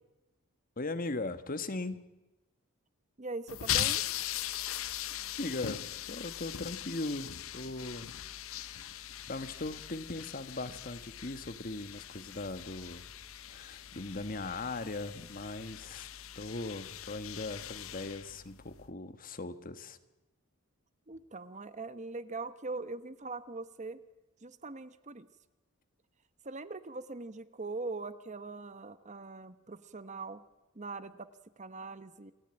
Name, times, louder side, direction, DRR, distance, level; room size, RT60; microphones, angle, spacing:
voice 1, 0.8-2.0 5.4-5.8 6.1-8.1 8.5-13.0 13.5-16.1 16.3-20.0, left 2 dB, 40° left, 11 dB, 1.3 m, -39 dB
voice 2, 3.2-4.0 21.1-24.0 24.4-25.3 26.4-30.4 30.7-31.3 31.6-32.3, right 3 dB, 35° right, 13 dB, 0.9 m, -41 dB
sound 1, 3.5-18.9, left 11 dB, 70° left, 0.8 m, -40 dB
28.0 x 14.0 x 8.9 m, 1.0 s
head